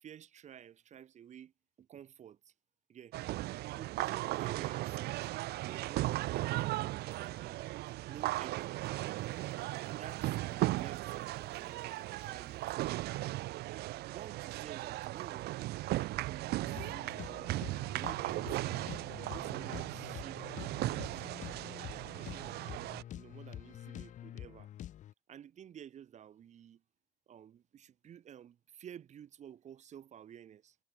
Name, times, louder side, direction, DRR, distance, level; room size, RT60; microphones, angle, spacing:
voice 1, 0.0-1.5 1.8-2.5 2.9-3.2 3.7-5.3 5.6-7.6 8.1-8.8 9.9-12.9 14.1-15.6 16.1-17.5 17.9-20.5 21.1-24.7 25.3-26.8 27.3-30.8, right 9 dB, 45° right, 0.8 m, -52 dB
sound 1, 3.1-23.0, right 17 dB, 70° right, 0.5 m, -37 dB
Coin (dropping), 7.0-13.0, left 2 dB, 15° left, 4.6 m, -70 dB
sound 2, 16.6-25.1, left 11 dB, 45° left, 0.5 m, -47 dB
cardioid pair, 110°, 17 cm